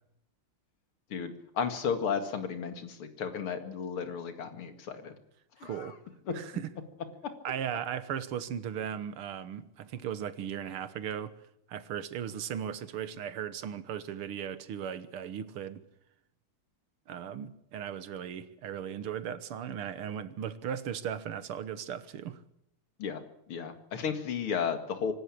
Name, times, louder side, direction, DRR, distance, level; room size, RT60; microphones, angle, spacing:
voice 1, 1.1-5.1 5.6-5.9 6.3-6.4 23.0-23.2 23.5-25.1, left 6 dB, 80° left, 2.9 m, -33 dB
voice 2, 5.6-5.9 6.3-6.7 7.4-11.3 11.7-15.8 17.1-22.4, right 9 dB, 90° right, 2.1 m, -37 dB
25.5 x 13.0 x 8.6 m
omnidirectional pair, 2.4 m